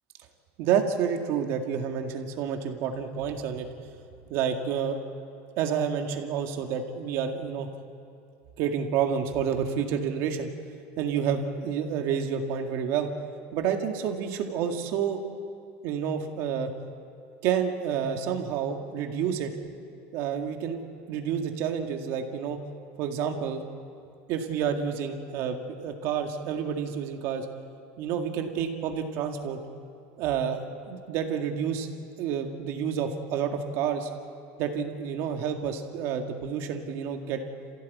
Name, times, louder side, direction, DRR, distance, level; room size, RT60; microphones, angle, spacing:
voice 1, 0.6-3.9 4.3-5.0 5.6-7.7 8.6-10.5 11.0-13.1 13.5-15.2 15.8-16.7 17.4-19.5 20.1-20.8 21.1-22.6 23.0-23.6 24.3-27.5 28.0-29.6 30.2-31.9 32.2-34.1 34.6-37.4, right 7 dB, 45° right, 4 dB, 2.0 m, -29 dB
27.5 x 16.0 x 8.5 m, 2.4 s
cardioid pair, 175°, 6 cm